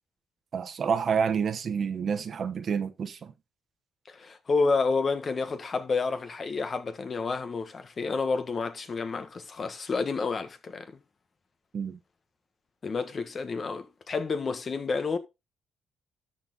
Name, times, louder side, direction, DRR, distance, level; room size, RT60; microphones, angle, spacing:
voice 1, 0.5-3.3 11.7-12.0, right 6 dB, 50° right, 1.1 m, -28 dB
voice 2, 4.1-10.9 12.8-15.2, left 4 dB, 40° left, 1.4 m, -29 dB
13.0 x 4.4 x 4.0 m
cardioid pair, 90°, 0 cm